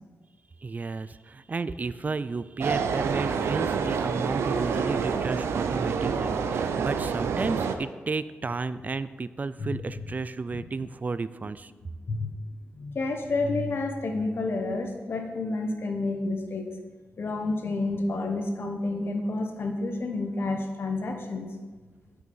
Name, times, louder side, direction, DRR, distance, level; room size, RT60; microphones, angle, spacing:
voice 1, 0.6-11.7, right 4 dB, 40° right, 15 dB, 0.4 m, -32 dB
sound 1, 2.6-7.8, right 6 dB, 90° right, 0.6 m, -27 dB
voice 2, 12.7-16.7 17.2-21.5, left 2 dB, 60° left, 4 dB, 1.3 m, -29 dB
9.1 x 5.5 x 5.5 m, 1.3 s
cardioid pair, 55°, 4 cm